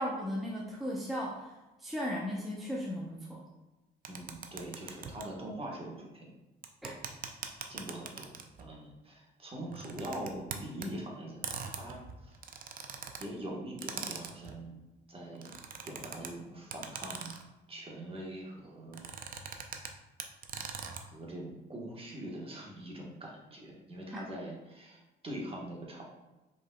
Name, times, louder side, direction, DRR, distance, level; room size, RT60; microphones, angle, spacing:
voice 1, 0.0-1.5 1.8-3.4 6.8-6.9, equal, ahead, -4 dB, 0.7 m, -36 dB
sound 1, 4.0-5.2 6.6-8.6 9.7-10.9 11.4-13.2 13.8-14.6 15.3-16.3 16.7-17.5 18.9-19.9 20.2-21.0, right 6 dB, 45° right, 0.5 m, -41 dB
voice 2, 4.1-6.3 7.7-8.3 8.6-11.4 11.7-12.4 13.2-14.8 15.1-15.5 15.8-17.3 17.7-19.0 19.4-19.5 20.9-26.0, right 1 dB, 30° right, -2 dB, 1.2 m, -43 dB
5.0 x 3.8 x 2.3 m, 1.1 s
cardioid pair, 90°, 20 cm